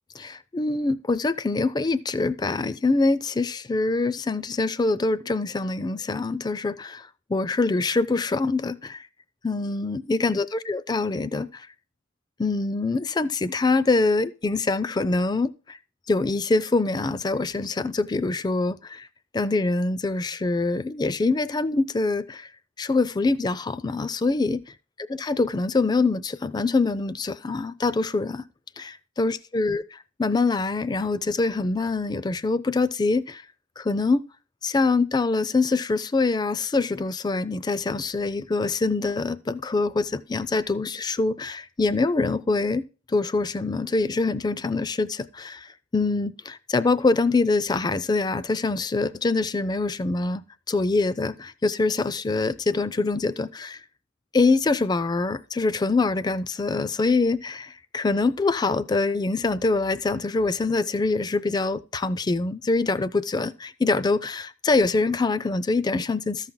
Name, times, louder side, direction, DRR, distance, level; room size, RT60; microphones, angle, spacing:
voice 1, 0.1-9.1 9.4-11.7 12.4-15.8 16.1-19.1 19.3-22.5 22.8-24.6 25.1-28.4 28.8-29.8 30.2-33.4 33.8-34.2 34.6-50.4 50.7-53.8 54.3-66.5, left 3 dB, 20° left, 0.3 m, -24 dB
13.5 x 5.8 x 3.8 m
head